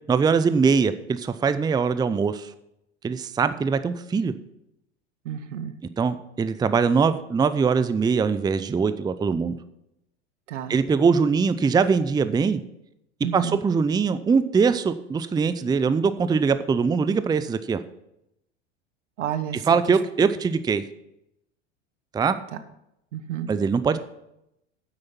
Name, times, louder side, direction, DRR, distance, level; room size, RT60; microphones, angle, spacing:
voice 1, 0.1-2.5 3.0-4.3 6.0-9.5 10.7-12.6 13.3-17.8 19.7-20.8 22.1-22.4 23.5-24.0, right 5 dB, 10° right, 13 dB, 0.5 m, -22 dB
voice 2, 5.2-5.7 10.5-10.7 13.2-13.6 19.2-19.8 23.1-23.5, right 9 dB, 80° right, 11 dB, 1.2 m, -30 dB
9.8 x 8.1 x 5.8 m, 0.83 s
hypercardioid pair, 90°, 36 cm